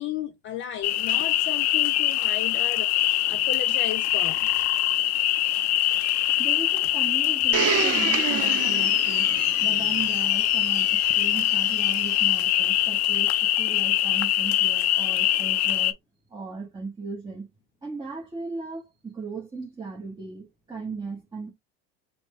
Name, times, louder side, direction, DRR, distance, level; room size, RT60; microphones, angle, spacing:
voice 1, 0.0-4.5, left 11 dB, 40° left, 0.5 m, -35 dB
sound 1, 0.8-15.9, left 14 dB, 85° left, 0.6 m, -23 dB
voice 2, 6.4-16.0 16.3-17.5 17.8-21.5, right 4 dB, 15° right, 1.2 m, -37 dB
Domestic sounds home sounds, 7.5-12.4 13.1-13.2, right 10 dB, 50° right, 0.7 m, -31 dB
5.7 x 2.3 x 3.1 m
hypercardioid pair, 85°, 32 cm